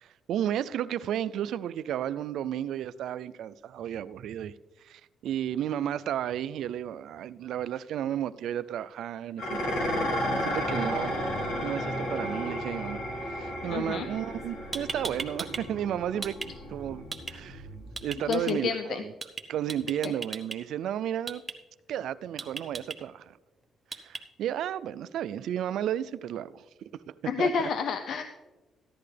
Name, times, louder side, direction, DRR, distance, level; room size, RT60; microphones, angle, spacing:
voice 1, 0.0-4.5 4.8-16.4 16.7-17.7 18.0-19.1 19.5-21.4 21.9-23.4 23.9-26.6 27.4-27.5, right 10 dB, 75° right, 0.3 m, -33 dB
Dishes pots and pans, 9.4-18.2, equal, 85° left, 2.9 m, -33 dB
voice 2, 13.7-14.1 18.3-19.0 20.0-20.1 27.3-28.2, left 6 dB, 70° left, 0.6 m, -29 dB
sound 1, 14.4-14.5 14.7-15.6 15.9-16.5 17.1-17.3 18.0-18.5 19.2-19.4 19.7-20.6 21.3-21.5 22.4-23.0 23.9-24.2, right 3 dB, 25° right, 0.9 m, -36 dB
14.5 x 10.5 x 3.3 m
cardioid pair, 90°, 0 cm